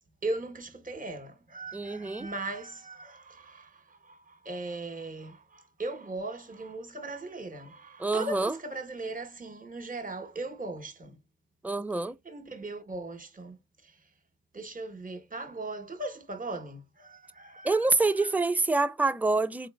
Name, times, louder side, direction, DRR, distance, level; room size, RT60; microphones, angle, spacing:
voice 1, 0.2-11.2 12.2-13.6 13.8-14.0 14.5-17.8 18.2-18.3, right 2 dB, 30° right, 1.2 m, -38 dB
voice 2, 1.7-2.3 8.0-8.5 11.6-12.2 17.6-19.7, right 3 dB, 5° right, 0.4 m, -26 dB
3.8 x 3.7 x 2.3 m
supercardioid pair, 60°, 29 cm